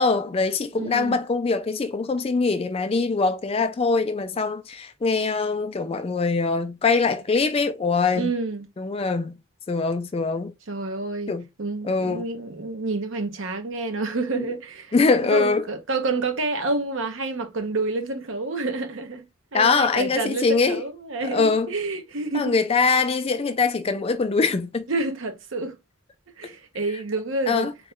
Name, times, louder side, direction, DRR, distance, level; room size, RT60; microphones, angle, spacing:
voice 1, 0.0-8.3 8.8-9.4 9.7-10.5 11.3-11.4 11.8-12.2 14.3-14.5 14.9-15.7 19.5-20.8 21.2-21.7 22.3-24.9 27.5-27.7, left 4 dB, 25° left, 0.3 m, -23 dB
voice 2, 0.7-1.2 8.1-8.7 10.7-11.3 11.6-14.9 15.3-19.3 19.5-22.6 24.9-25.8 26.4-27.7, right 3 dB, 65° right, 0.7 m, -28 dB
4.0 x 2.2 x 3.6 m
head